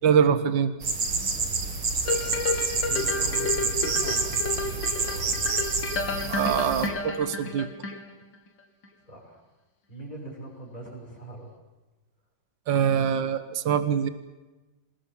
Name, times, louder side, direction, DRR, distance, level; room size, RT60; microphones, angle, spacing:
voice 1, 0.0-0.8 6.3-7.7 12.7-14.1, right 7 dB, 70° right, 11 dB, 1.9 m, -23 dB
sound 1, 0.8-6.9, right 4 dB, 85° right, 3.2 m, -28 dB
sound 2, 2.1-8.3 8.8-8.9, left 3 dB, 65° left, 2.6 m, -31 dB
voice 2, 2.2-5.5 9.1-9.4 9.9-11.5, right 2 dB, 20° left, -1 dB, 6.4 m, -42 dB
26.0 x 20.0 x 7.4 m, 1.1 s
omnidirectional pair, 2.2 m